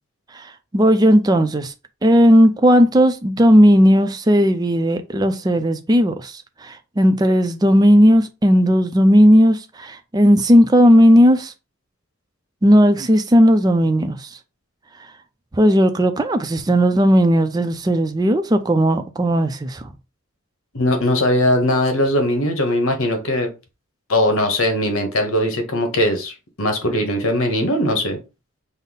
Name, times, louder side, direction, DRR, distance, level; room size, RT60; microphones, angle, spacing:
voice 1, 0.7-1.7 2.0-11.5 12.6-14.3 15.6-19.8, equal, 20° right, 0.4 m, -15 dB
voice 2, 20.7-23.5 24.1-28.2, left 1 dB, 80° left, 1.1 m, -20 dB
5.3 x 2.0 x 4.0 m
head